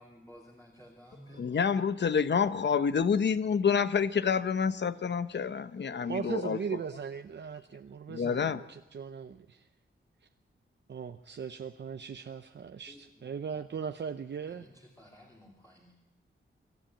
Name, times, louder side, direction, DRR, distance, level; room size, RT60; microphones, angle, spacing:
voice 1, 0.0-1.8 12.9-13.6 14.5-15.9, equal, 15° left, -2 dB, 2.8 m, -54 dB
voice 2, 1.4-6.6 8.1-8.6, left 6 dB, 55° left, 13 dB, 0.8 m, -28 dB
voice 3, 6.1-9.7 10.9-14.7, right 6 dB, 60° right, 8 dB, 0.7 m, -39 dB
24.5 x 13.0 x 8.9 m, 0.99 s
wide cardioid pair, 165°, 21 cm